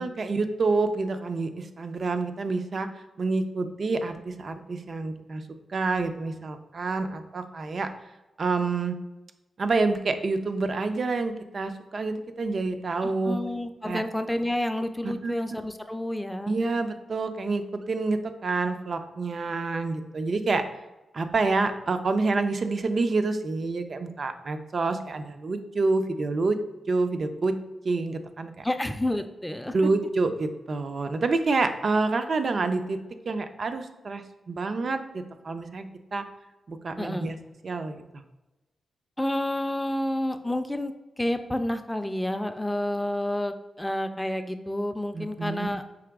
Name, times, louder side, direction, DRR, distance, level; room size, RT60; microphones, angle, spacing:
voice 1, 0.0-2.9 3.2-5.4 5.7-7.9 8.4-8.9 9.6-13.4 13.8-14.0 15.0-15.3 16.5-20.6 21.1-26.6 26.9-27.6 27.8-28.6 29.7-33.0 33.3-35.9 36.1-36.2 36.7-37.4 37.6-38.0 45.1-45.7, right 3 dB, 55° right, 8 dB, 0.4 m, -27 dB
voice 2, 13.0-16.6 28.6-29.7 37.0-37.3 39.2-45.8, left 1 dB, 10° left, 8 dB, 0.4 m, -29 dB
4.8 x 2.9 x 3.5 m, 1.0 s
cardioid pair, 65°, 0 cm